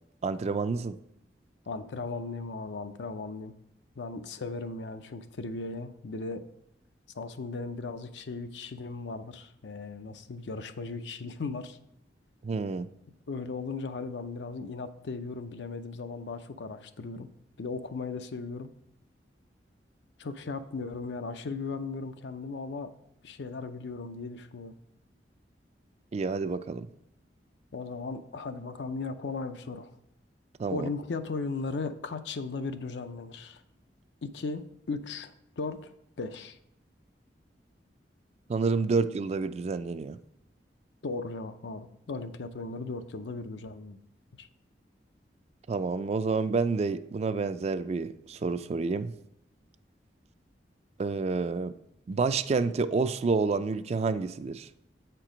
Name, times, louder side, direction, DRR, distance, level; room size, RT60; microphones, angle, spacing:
voice 1, 0.2-1.0 12.4-12.9 26.1-26.9 30.6-30.9 38.5-40.2 45.7-49.1 51.0-51.7 52.1-54.7, right 4 dB, 35° right, 0.3 m, -29 dB
voice 2, 1.7-3.5 4.0-6.5 7.2-11.8 13.3-17.3 17.6-18.7 20.2-22.9 23.2-24.7 27.7-29.9 30.7-33.6 34.2-36.6 41.0-44.0 44.4-44.5, left 3 dB, 85° left, 0.5 m, -37 dB
7.9 x 4.5 x 5.0 m
head